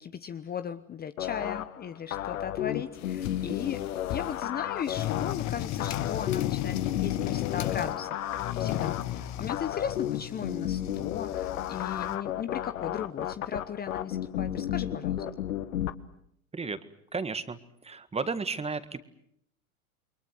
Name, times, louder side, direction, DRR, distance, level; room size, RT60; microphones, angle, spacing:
voice 1, 0.0-3.8 4.1-8.2 8.6-15.2, left 8 dB, 20° left, 11 dB, 1.0 m, -37 dB
sound 1, 1.2-15.9, left 11 dB, 75° left, 1.6 m, -33 dB
sound 2, 3.0-4.5 4.9-8.0 8.3-12.2, left 13 dB, 40° left, 1.4 m, -35 dB
voice 2, 17.1-19.1, right 4 dB, 15° right, 13 dB, 1.7 m, -33 dB
29.0 x 22.5 x 7.7 m, 0.72 s
hypercardioid pair, 95°, 42 cm